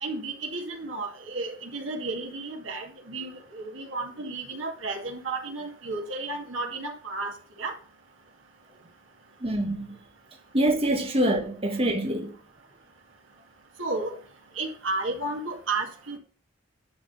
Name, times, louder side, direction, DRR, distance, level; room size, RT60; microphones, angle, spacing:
voice 1, 0.0-7.7 13.8-14.2 14.6-16.2, right 3 dB, 75° right, 2.2 m, -33 dB
voice 2, 9.4-9.9 10.5-12.4, right 1 dB, 30° right, 1.3 m, -25 dB
10.5 x 3.9 x 6.7 m
head